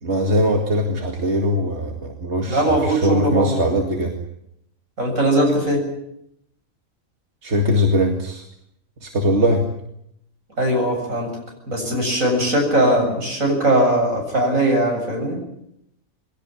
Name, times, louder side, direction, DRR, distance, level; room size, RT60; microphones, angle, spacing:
voice 1, 0.0-4.2 7.4-8.4 9.0-9.7, equal, 55° right, 2 dB, 2.5 m, -21 dB
voice 2, 2.5-3.6 5.0-5.9 10.6-11.3 11.7-15.4, right 1 dB, 75° right, 1 dB, 7.9 m, -20 dB
23.0 x 17.5 x 9.9 m, 0.76 s
omnidirectional pair, 1.4 m